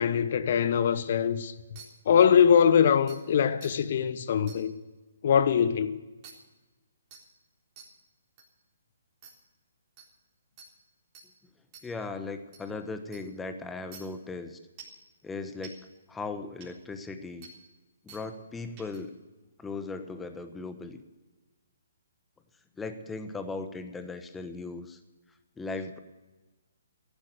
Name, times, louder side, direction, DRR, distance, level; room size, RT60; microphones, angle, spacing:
voice 1, 0.0-1.5 2.1-4.7 5.2-5.9, left 7 dB, 50° left, 1.0 m, -22 dB
sound 1, 1.8-1.9 2.6-2.7 3.1-3.2 3.6-3.7 4.5-4.6 6.2-6.3 7.1-7.2 7.8-7.9 8.4-8.5 9.2-9.3 10.0-10.1 10.6-10.7 11.1-11.3 11.7-11.8 12.5-12.6 13.1-13.2 13.9-14.0 14.8-15.0 15.6-15.7 16.6-16.7 17.4-17.5 18.1-18.2 18.8-19.0, right 6 dB, 30° right, 3.7 m, -48 dB
voice 2, 11.8-14.6 15.2-15.8 16.1-17.5 18.0-19.1 19.6-21.0 22.8-25.0 25.6-26.0, left 3 dB, 10° left, 1.2 m, -38 dB
14.5 x 11.5 x 6.7 m
figure-of-eight pair, 135°, 0 cm